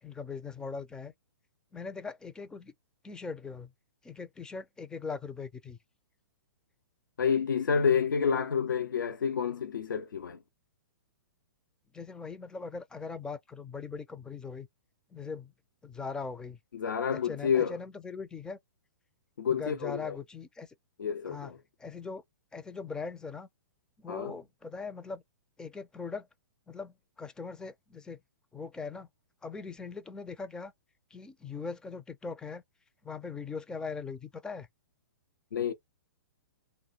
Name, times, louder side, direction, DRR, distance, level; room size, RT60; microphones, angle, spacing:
voice 1, 0.0-1.1 1.7-2.7 3.0-3.7 4.0-5.8 11.9-14.7 15.1-15.5 15.8-16.6 17.1-18.6 19.5-20.7 21.3-21.5 21.8-22.2 22.5-23.5 24.0-25.2 25.6-26.3 26.7-28.2 28.5-29.1 29.4-30.7 31.1-32.6 33.0-34.7, left 5 dB, 5° left, 0.4 m, -40 dB
voice 2, 7.2-10.4 16.7-17.7 19.4-20.2 21.0-21.6 24.1-24.3 35.5-35.7, left 7 dB, 80° left, 0.6 m, -29 dB
2.6 x 2.1 x 3.9 m
hypercardioid pair, 125°, 10 cm